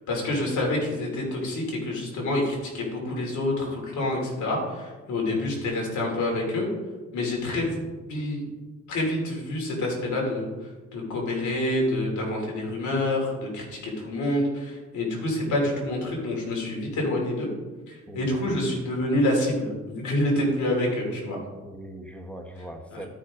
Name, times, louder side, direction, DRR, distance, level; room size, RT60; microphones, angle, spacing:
voice 1, 0.1-6.7 7.1-8.4 8.9-17.5 17.9-21.4 22.9-23.0, left 1 dB, 70° left, -1 dB, 3.0 m, -27 dB
voice 2, 18.1-18.5 21.6-23.1, right 1 dB, 5° left, 4 dB, 1.2 m, -41 dB
12.5 x 5.6 x 3.7 m, 1.3 s
cardioid pair, 90°, 30 cm